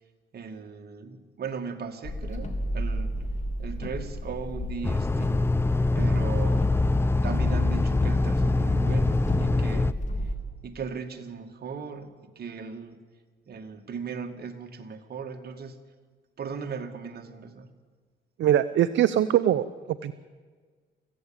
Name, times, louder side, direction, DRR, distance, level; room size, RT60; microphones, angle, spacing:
voice 1, 0.3-3.2 3.6-5.5 6.0-6.7 7.2-10.3 10.6-13.0 13.5-15.8 16.4-17.7, right 5 dB, 55° right, 5 dB, 2.2 m, -38 dB
sound 1, 2.0-10.4, left 1 dB, 35° left, 3.3 m, -33 dB
sound 2, 4.8-9.9, left 2 dB, 10° left, 0.7 m, -24 dB
voice 2, 18.4-20.1, right 11 dB, 70° right, 13 dB, 0.7 m, -23 dB
24.5 x 15.5 x 8.9 m, 1.5 s
cardioid pair, 90°, 20 cm